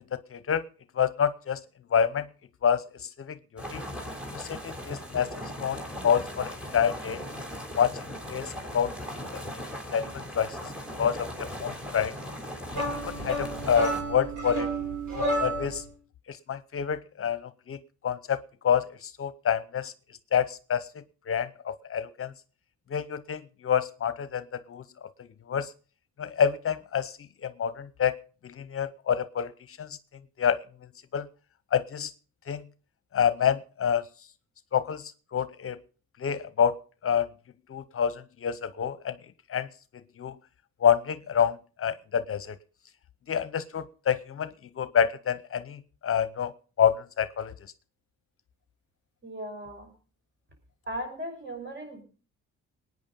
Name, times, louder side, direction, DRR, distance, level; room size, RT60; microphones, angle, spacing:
voice 1, 0.3-0.6 1.0-1.6 1.9-2.3 2.6-2.8 3.3-3.8 4.3-5.3 5.6-5.8 6.0-7.2 7.8-8.0 8.3-8.9 9.9-10.6 11.0-12.1 12.7-14.7 15.1-15.8 16.3-17.8 18.0-18.4 18.6-19.9 20.3-20.9 21.3-22.3 22.9-24.8 25.5-25.7 26.2-27.1 27.4-28.2 28.4-29.5 29.8-29.9 30.4-30.6 31.1-31.3 31.7-32.1 32.5-32.6 33.1-34.0 34.7-35.8 36.2-36.8 37.0-37.3 37.7-39.2 39.5-39.7 40.2-40.3 40.8-42.6 43.3-46.5 46.8-47.5, left 8 dB, 45° left, 15 dB, 0.8 m, -27 dB
sound 1, 3.6-14.0, equal, 5° right, 3.4 m, -38 dB
sound 2, 12.7-15.9, right 1 dB, 70° right, 5.6 m, -31 dB
voice 2, 49.2-49.9 50.9-52.0, equal, 40° right, 5 dB, 5.5 m, -37 dB
20.0 x 9.4 x 5.2 m, 0.39 s
cardioid pair, 90°, 30 cm